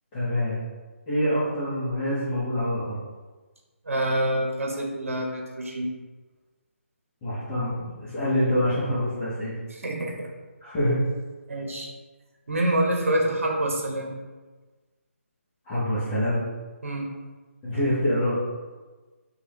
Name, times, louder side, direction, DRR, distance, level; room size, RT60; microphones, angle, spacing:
voice 1, 0.1-0.6 1.1-3.0 7.2-7.7 8.0-9.5 10.6-11.0 15.7-16.4 17.6-18.4, equal, 20° left, -13 dB, 1.1 m, -25 dB
voice 2, 3.8-5.9 9.7-10.1 11.5-11.9 12.5-14.1 16.8-17.1, right 1 dB, 70° right, 0 dB, 1.1 m, -26 dB
4.7 x 2.8 x 3.0 m, 1.3 s
figure-of-eight pair, 150°, 8 cm